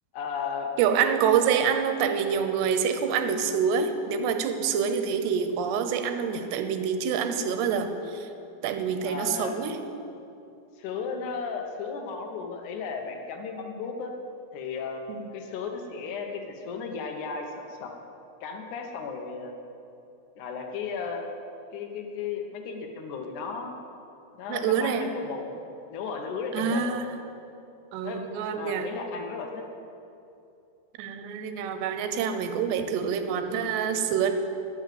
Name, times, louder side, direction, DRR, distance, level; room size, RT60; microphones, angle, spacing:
voice 1, 0.1-0.7 9.0-9.6 10.8-14.1 14.5-15.0 15.3-17.9 18.4-19.5 20.4-21.2 21.7-23.7 24.3-25.6 25.9-27.0 28.0-28.2 28.5-29.6, left 5 dB, 75° left, 3 dB, 1.8 m, -35 dB
voice 2, 0.8-8.3 8.6-9.8 15.1-15.3 24.5-25.1 26.5-27.1 27.9-28.9 31.0-34.3, right 7 dB, 80° right, 7 dB, 2.9 m, -26 dB
11.0 x 8.7 x 7.6 m, 2.7 s
omnidirectional pair, 5.0 m